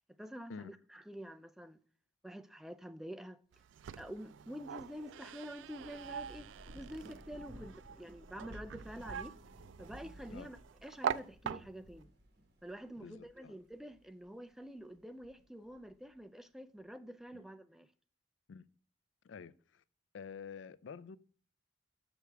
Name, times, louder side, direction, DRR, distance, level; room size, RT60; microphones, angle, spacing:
voice 1, 0.2-1.8 2.2-3.4 4.0-6.5 6.8-9.4 9.8-12.1 12.6-17.9, equal, ahead, 0.3 m, -48 dB
sound 1, 3.5-12.0, right 8 dB, 80° right, 0.3 m, -44 dB
Thunder / Rain, 5.6-14.3 14.8-16.1, right 1 dB, 60° right, 1.5 m, -55 dB
voice 2, 13.0-13.5 17.3-17.4 18.5-18.7 19.2-19.8 20.1-21.2, left 6 dB, 85° left, 0.4 m, -49 dB
6.7 x 6.2 x 3.3 m
head